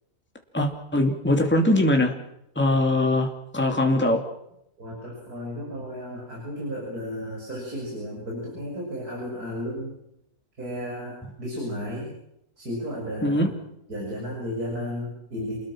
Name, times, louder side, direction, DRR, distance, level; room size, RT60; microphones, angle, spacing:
voice 1, 0.5-2.1 2.6-4.2 13.2-13.5, left 1 dB, 5° left, 3 dB, 2.7 m, -22 dB
voice 2, 4.8-10.0 10.6-12.1 12.6-13.5 13.9-15.6, equal, 85° right, -2 dB, 7.5 m, -33 dB
29.5 x 21.0 x 6.3 m, 0.80 s
omnidirectional pair, 1.6 m